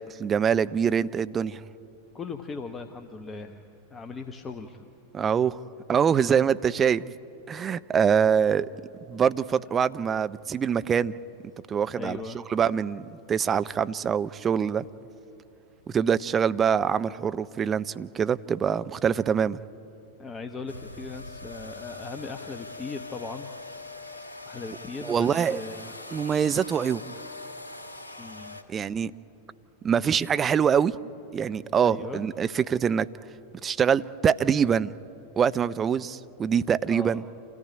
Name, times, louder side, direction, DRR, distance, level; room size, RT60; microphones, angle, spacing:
voice 1, 0.0-1.6 5.1-5.6 5.9-7.0 7.5-8.7 9.1-11.1 11.7-12.2 12.5-14.9 15.9-19.6 25.0-25.6 26.1-27.0 28.7-29.1 29.8-30.9 31.3-33.1 33.6-34.9 35.4-37.2, right 7 dB, 25° right, 14 dB, 0.5 m, -24 dB
voice 2, 2.1-3.6 3.9-4.8 12.0-12.4 20.2-23.5 24.4-25.9 28.2-28.6 31.8-32.2 36.9-37.2, left 4 dB, 20° left, 6 dB, 1.0 m, -38 dB
sound 1, 20.7-28.6, left 2 dB, 75° left, 1.7 m, -42 dB
27.5 x 14.5 x 9.9 m, 2.9 s
figure-of-eight pair, 90°, 0 cm